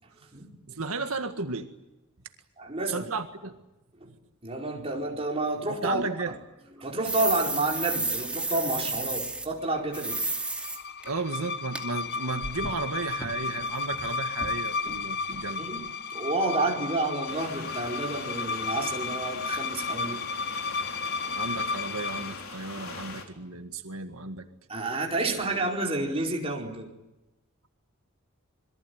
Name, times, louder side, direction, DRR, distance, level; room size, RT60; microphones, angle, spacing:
voice 1, 0.7-1.7 2.9-3.5 5.7-6.3 11.1-15.6 21.4-24.5 25.3-25.5, right 3 dB, 85° right, 6 dB, 1.9 m, -34 dB
voice 2, 2.6-3.1 4.0-4.1 4.4-6.0 6.8-10.2 15.6-15.8 16.1-20.2 24.7-26.9, right 2 dB, 30° right, 0 dB, 4.6 m, -30 dB
sound 1, 7.0-9.5 9.9-10.8 11.0-11.1 11.7-11.8 12.1-14.1 14.4-14.6 14.9-15.0 15.3-15.4 15.8-15.9, right 2 dB, 5° right, 2.6 m, -32 dB
sound 2, 9.7-22.4, left 4 dB, 50° left, 1.0 m, -33 dB
sound 3, 17.3-23.2, left 3 dB, 75° left, 4.6 m, -41 dB
27.0 x 22.5 x 9.5 m, 0.96 s
head